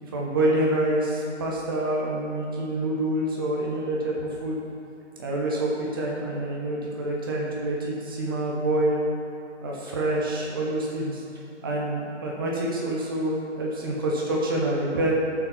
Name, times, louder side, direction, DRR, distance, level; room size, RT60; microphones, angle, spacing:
voice 1, 0.0-4.6 5.2-9.1 9.6-11.2 11.6-15.1, right 1 dB, 20° right, -3 dB, 1.2 m, -27 dB
12.5 x 7.3 x 4.4 m, 2.7 s
figure-of-eight pair, 150°, 37 cm